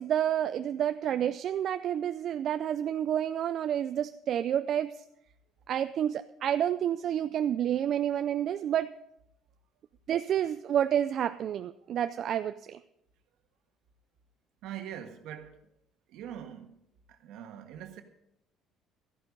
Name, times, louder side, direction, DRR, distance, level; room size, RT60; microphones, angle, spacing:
voice 1, 0.0-4.9 5.7-8.9 10.1-12.8, right 10 dB, 55° right, 0.4 m, -29 dB
voice 2, 14.6-15.5 16.1-16.8 17.1-18.0, right 10 dB, 75° right, 1.5 m, -42 dB
13.0 x 11.0 x 5.4 m
cardioid pair, 100°, 0 cm